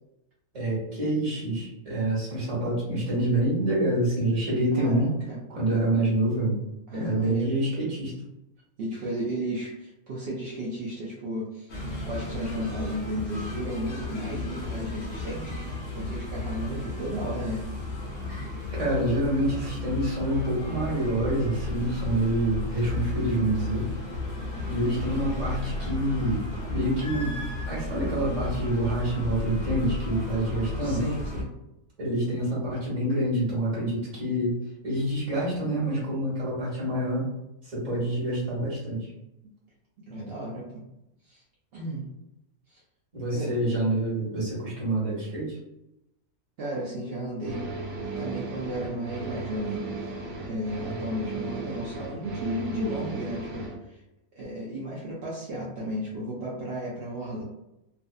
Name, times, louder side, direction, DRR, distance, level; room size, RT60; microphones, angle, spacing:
voice 1, 0.5-5.1 5.5-6.6 6.9-8.1 18.3-18.5 18.7-23.8 24.7-27.4 27.7-31.0 32.0-34.6 34.8-37.3 37.6-39.1 43.1-45.6, right 1 dB, 30° right, -6 dB, 1.1 m, -27 dB
voice 2, 4.8-5.4 6.9-7.6 8.8-11.7 12.0-18.0 30.8-31.5 40.1-40.6 41.2-41.4 41.7-42.1 42.7-42.8 43.3-43.7 46.6-47.7 48.2-50.1 50.4-54.0 54.4-57.4, equal, 65° right, -5 dB, 0.6 m, -34 dB
sound 1, 11.7-31.4, left 2 dB, 55° left, 0.5 m, -34 dB
sound 2, 47.4-53.8, right 3 dB, 85° right, 1.1 m, -35 dB
2.5 x 2.5 x 2.3 m, 0.90 s
omnidirectional pair, 1.5 m